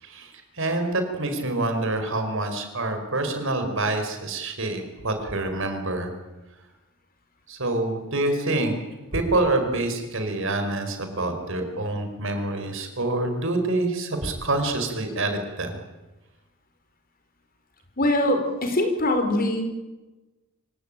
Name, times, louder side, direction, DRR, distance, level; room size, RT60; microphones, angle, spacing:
voice 1, 0.0-6.1 7.5-8.8 9.1-15.8, right 2 dB, 60° right, 6 dB, 5.1 m, -26 dB
voice 2, 18.0-19.6, left 1 dB, 40° left, 6 dB, 4.5 m, -22 dB
26.5 x 17.5 x 9.0 m, 1.1 s
head